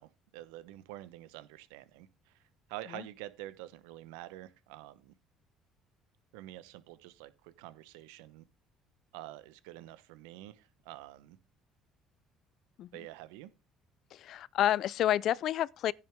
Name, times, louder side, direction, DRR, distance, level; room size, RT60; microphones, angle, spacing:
voice 1, 0.0-2.4 2.7-5.1 6.3-8.4 9.1-11.4 12.9-13.5, right 15 dB, 85° right, 1.1 m, -47 dB
voice 2, 14.1-15.9, left 12 dB, 65° left, 0.4 m, -29 dB
10.5 x 9.7 x 3.7 m
supercardioid pair, 80°, 0 cm